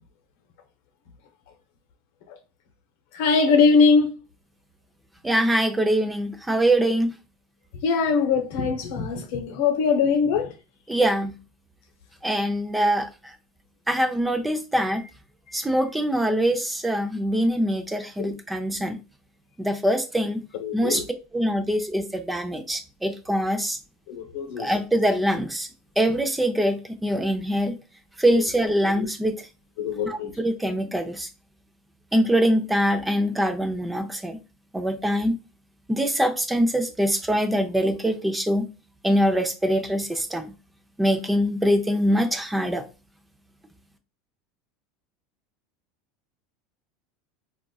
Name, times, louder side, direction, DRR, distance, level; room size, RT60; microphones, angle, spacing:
voice 1, 3.1-4.2 7.8-10.5 14.8-14.9 18.2-18.3 20.6-21.1 24.1-24.7 28.8-29.1 29.8-30.3, left 5 dB, 70° left, 0.7 m, -22 dB
voice 2, 5.2-7.1 10.9-11.4 12.2-13.3 13.9-15.0 15.5-19.0 19.6-20.4 20.7-21.0 21.3-23.8 24.6-25.7 26.0-27.8 28.2-29.4 30.0-31.3 32.1-34.4 34.7-35.3 35.9-38.6 39.0-40.5 41.0-42.8, equal, 10° right, 0.5 m, -23 dB
3.7 x 2.4 x 2.3 m
supercardioid pair, 105°, 0 cm